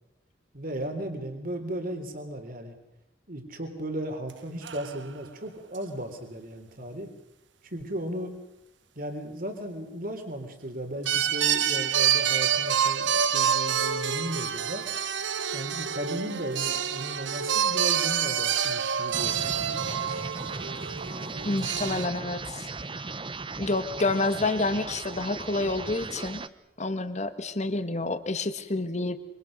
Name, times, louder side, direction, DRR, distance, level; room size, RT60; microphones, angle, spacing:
voice 1, 0.5-2.8 3.3-7.1 7.7-8.4 9.0-14.8 15.5-19.9 21.4-22.3, right 1 dB, 50° right, 5 dB, 3.4 m, -36 dB
sound 1, 4.3-4.4 4.6-5.0 5.7-5.8 11.1-22.1, right 8 dB, 85° right, 1.1 m, -27 dB
sound 2, 19.1-26.5, right 3 dB, 25° right, 0.8 m, -37 dB
voice 2, 21.5-22.7 23.6-26.4 26.8-29.2, left 2 dB, 40° left, 10 dB, 1.7 m, -28 dB
26.5 x 25.0 x 6.6 m, 0.90 s
head